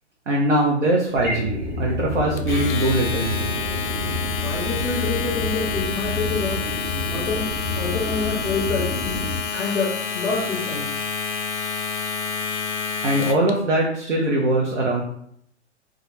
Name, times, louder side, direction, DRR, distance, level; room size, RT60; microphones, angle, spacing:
voice 1, 0.3-3.5 13.0-15.0, right 1 dB, 75° right, -2 dB, 0.7 m, -21 dB
sound 1, 1.1-9.4, left 1 dB, 25° right, 0.7 m, -28 dB
Domestic sounds home sounds, 2.4-13.5, left 6 dB, 70° left, 0.5 m, -29 dB
voice 2, 4.4-6.6 7.1-7.5 7.7-9.2 9.5-10.9, left 4 dB, 5° left, -10 dB, 0.4 m, -27 dB
2.4 x 2.0 x 3.0 m, 0.67 s
figure-of-eight pair, 125°, 36 cm